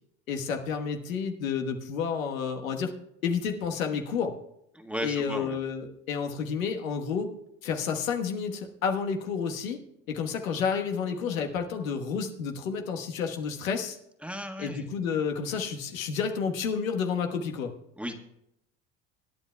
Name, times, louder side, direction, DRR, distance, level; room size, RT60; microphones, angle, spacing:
voice 1, 0.3-2.9 3.2-4.4 5.0-7.3 7.6-9.8 10.1-14.0 14.6-17.7, left 6 dB, 90° left, 4 dB, 1.3 m, -30 dB
voice 2, 4.7-5.6 14.2-14.9 18.0-18.2, equal, 5° right, 4 dB, 1.5 m, -35 dB
25.0 x 9.6 x 2.3 m, 0.80 s
hypercardioid pair, 80°, 39 cm